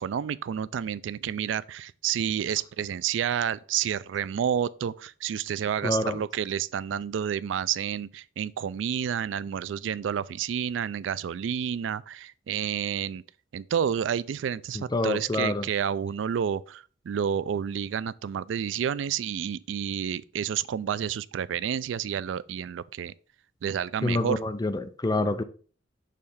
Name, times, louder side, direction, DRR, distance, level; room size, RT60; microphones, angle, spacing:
voice 1, 0.0-13.2 13.5-23.1 23.6-24.4, right 8 dB, 85° right, 0.3 m, -30 dB
voice 2, 5.8-6.2 14.7-15.7 24.0-25.4, left 2 dB, 20° left, 0.5 m, -27 dB
6.6 x 3.2 x 5.4 m
head